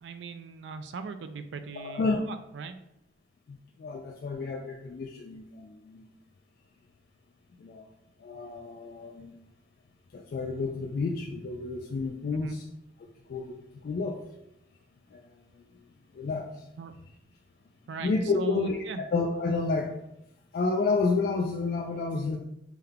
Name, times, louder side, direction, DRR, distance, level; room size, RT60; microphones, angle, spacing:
voice 1, 0.0-2.8 12.3-12.6 16.8-16.9 17.9-19.0, right 5 dB, 80° right, 9 dB, 0.3 m, -39 dB
voice 2, 1.7-2.2 3.5-6.1 7.6-7.8 8.2-9.4 10.1-12.7 13.3-13.6 13.8-14.2 15.1-15.2 16.2-16.5 18.0-19.9 20.5-22.4, left 3 dB, 55° left, 1 dB, 0.3 m, -30 dB
3.5 x 2.2 x 3.5 m, 0.83 s
head